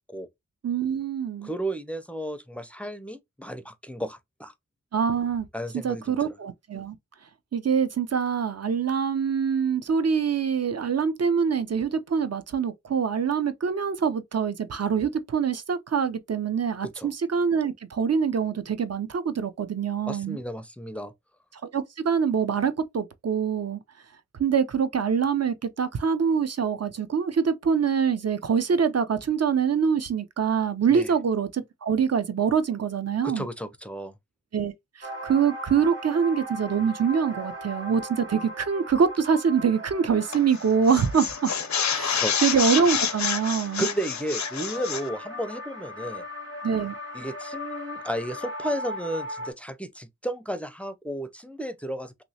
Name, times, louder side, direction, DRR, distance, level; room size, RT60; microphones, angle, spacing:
voice 1, 0.6-1.5 4.9-5.5 5.8-7.0 7.5-20.4 21.7-23.8 24.4-33.5 34.5-34.7 35.0-41.5 41.9-43.9 46.6-46.9, right 6 dB, 55° right, 0.6 m, -25 dB
voice 2, 1.4-4.5 5.5-6.3 16.8-17.1 20.1-21.1 30.9-31.1 33.2-34.1 42.2-42.3 43.8-46.2 47.1-52.2, right 1 dB, 5° left, 0.4 m, -33 dB
sound 1, 35.0-49.5, equal, 40° right, 1.4 m, -39 dB
sound 2, 40.3-40.6 40.9-45.1, left 7 dB, 65° left, 0.5 m, -28 dB
3.1 x 2.9 x 2.7 m
wide cardioid pair, 60°, 31 cm